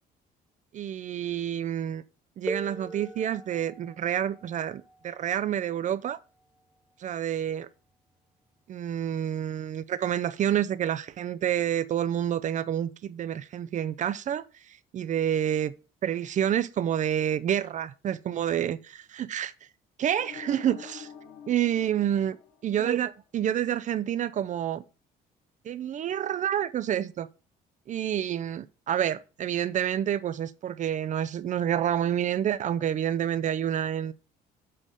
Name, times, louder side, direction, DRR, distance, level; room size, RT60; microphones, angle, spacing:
voice 1, 0.7-2.0 2.4-6.2 7.0-7.7 8.7-15.7 16.0-19.5 20.0-21.1 21.5-22.3 22.6-24.8 25.6-27.3 27.9-34.1, right 10 dB, 45° right, 0.5 m, -28 dB
sound 1, 2.5-7.9 9.0-9.1 9.9-10.1, right 2 dB, 5° right, 0.6 m, -42 dB
sound 2, 20.1-23.1, left 7 dB, 75° left, 1.9 m, -46 dB
7.7 x 3.6 x 6.4 m
cardioid pair, 110°, 17 cm